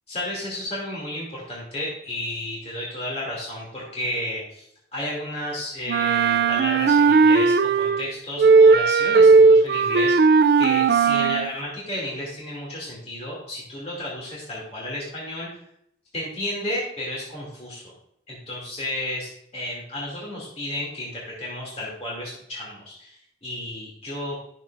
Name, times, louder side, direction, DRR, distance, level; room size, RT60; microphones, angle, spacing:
voice 1, 0.1-4.7 4.9-15.5 16.1-17.9 18.3-24.4, left 1 dB, 35° left, -5 dB, 2.5 m, -32 dB
Wind instrument woodwind instrument, 5.9-8.1 8.4-11.5, right 4 dB, 55° right, 0.3 m, -16 dB
12.0 x 7.2 x 2.5 m, 0.73 s
head